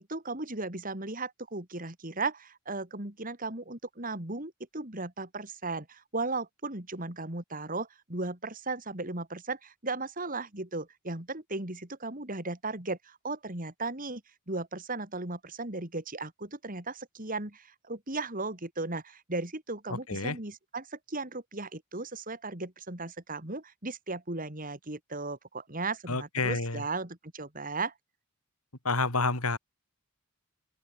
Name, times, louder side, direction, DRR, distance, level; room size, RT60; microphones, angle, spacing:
voice 1, 0.0-14.2 14.5-27.9, right 3 dB, 40° right, 3.7 m, -36 dB
voice 2, 19.9-20.4 26.1-26.8 28.8-29.6, left 3 dB, 80° left, 4.4 m, -29 dB
open air
head